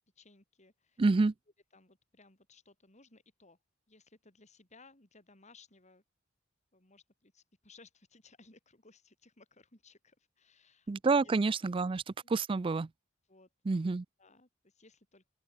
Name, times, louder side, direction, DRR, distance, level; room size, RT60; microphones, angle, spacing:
voice 1, 0.1-1.0 1.7-3.6 3.9-6.0 6.7-11.7 13.3-13.5 14.2-15.3, left 3 dB, 35° left, 4.5 m, -61 dB
voice 2, 1.0-1.3 10.9-12.0 12.3-12.9 13.7-14.0, right 3 dB, 25° right, 0.4 m, -28 dB
open air
head